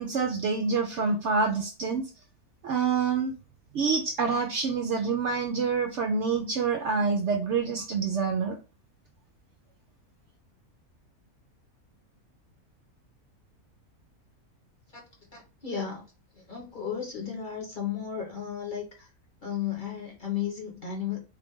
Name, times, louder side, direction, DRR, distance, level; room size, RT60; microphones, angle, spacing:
voice 1, 0.0-2.1 2.6-3.3 3.7-8.6, right 5 dB, 65° right, 0.8 m, -27 dB
voice 2, 15.6-16.0 16.5-19.1 19.4-21.2, left 8 dB, 35° left, 1.1 m, -33 dB
3.3 x 2.4 x 3.5 m
omnidirectional pair, 1.5 m